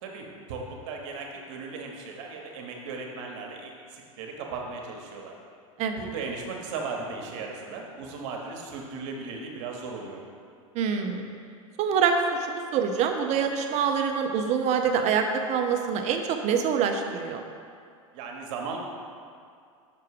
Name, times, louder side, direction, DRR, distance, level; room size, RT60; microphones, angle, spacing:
voice 1, 0.0-5.3 6.0-10.2 18.1-18.8, right 4 dB, 60° right, 0 dB, 1.2 m, -37 dB
voice 2, 10.7-11.3 11.8-17.4, right 6 dB, 40° right, 5 dB, 0.6 m, -25 dB
6.0 x 4.6 x 4.8 m, 2.3 s
hypercardioid pair, 100°, 18 cm